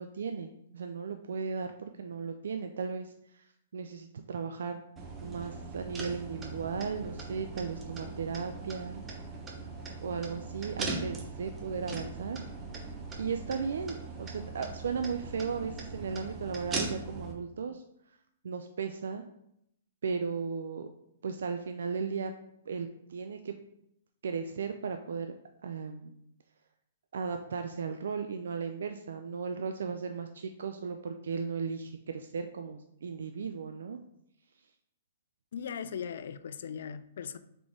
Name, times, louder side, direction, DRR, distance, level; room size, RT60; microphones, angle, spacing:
voice 1, 0.0-3.5 3.7-4.8 5.2-9.0 10.0-12.4 13.2-17.8 18.1-18.2 18.4-19.2 20.0-20.9 21.2-22.3 22.7-23.6 24.2-25.3 25.6-26.1 27.1-34.0, right 5 dB, 75° right, 0.3 m, -36 dB
sound 1, 5.0-17.3, right 3 dB, 20° right, 0.8 m, -40 dB
voice 2, 35.5-37.4, left 7 dB, 70° left, 0.3 m, -39 dB
3.7 x 3.5 x 3.5 m
hypercardioid pair, 135°, 0 cm